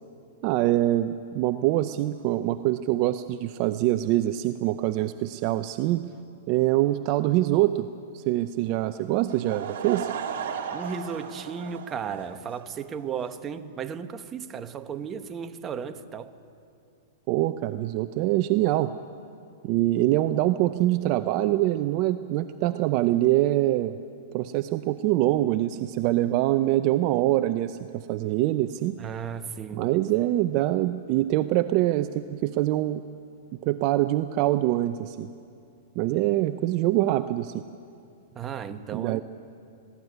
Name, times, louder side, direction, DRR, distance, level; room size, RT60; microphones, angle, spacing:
voice 1, 0.4-6.0 6.5-7.9 8.1-10.1 17.3-18.9 19.6-24.0 24.3-29.0 29.7-33.0 33.6-35.3 36.0-37.6 38.9-39.2, right 15 dB, 40° right, 0.6 m, -24 dB
voice 2, 9.0-9.4 10.7-16.3 29.0-29.9 38.3-39.2, right 7 dB, 20° right, 1.0 m, -35 dB
Laughter / Crowd, 9.2-12.8, right 8 dB, 65° right, 2.7 m, -35 dB
20.0 x 16.5 x 9.6 m
hypercardioid pair, 140°, 0 cm